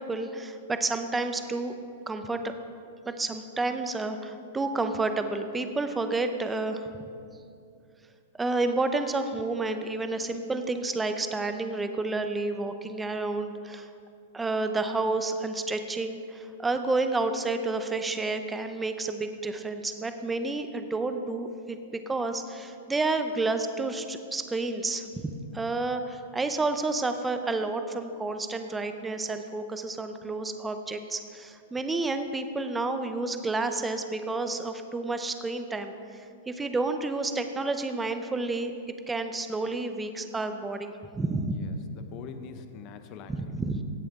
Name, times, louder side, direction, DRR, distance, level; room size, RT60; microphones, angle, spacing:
voice 1, 0.0-1.7 2.1-6.9 8.3-13.9 14.3-21.8 22.1-38.7 39.1-41.6 43.3-43.8, right 3 dB, 10° right, 8 dB, 0.6 m, -30 dB
voice 2, 41.5-43.5, left 7 dB, 35° left, 8 dB, 0.7 m, -44 dB
17.0 x 7.0 x 3.6 m, 2.4 s
hypercardioid pair, 145°, 0 cm